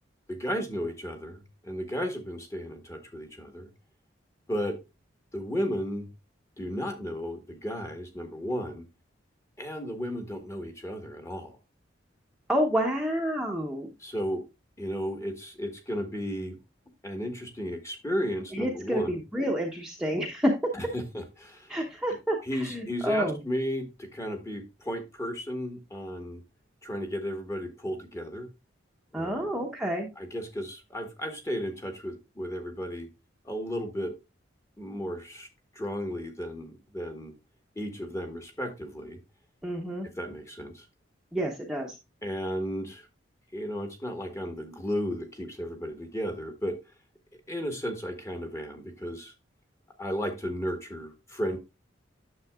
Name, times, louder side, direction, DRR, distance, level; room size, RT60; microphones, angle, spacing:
voice 1, 0.3-3.7 4.5-4.8 5.3-6.1 6.6-8.9 9.6-11.5 14.0-14.4 14.8-16.6 17.0-19.2 20.7-21.8 22.4-26.4 26.8-28.5 29.1-29.5 30.2-33.1 33.4-34.1 34.8-35.5 35.7-37.3 37.7-39.2 40.2-40.9 42.2-43.1 43.5-46.8 47.5-49.3 50.0-51.6, equal, 15° left, 5 dB, 1.4 m, -34 dB
voice 2, 12.5-13.9 18.5-20.5 21.7-23.4 29.1-30.1 39.6-40.1 41.3-41.9, equal, 5° right, -1 dB, 0.9 m, -29 dB
9.6 x 7.0 x 2.4 m, 0.25 s
head